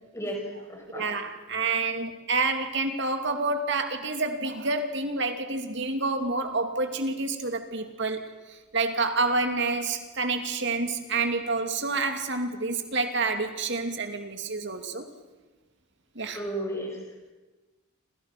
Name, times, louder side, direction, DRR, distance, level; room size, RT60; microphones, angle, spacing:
voice 1, 0.1-0.4 0.7-1.0 16.2-17.0, right 1 dB, 15° left, 2 dB, 5.9 m, -33 dB
voice 2, 0.9-15.1 16.1-16.4, right 3 dB, 55° right, 6 dB, 2.7 m, -28 dB
29.0 x 27.5 x 6.1 m, 1.2 s
head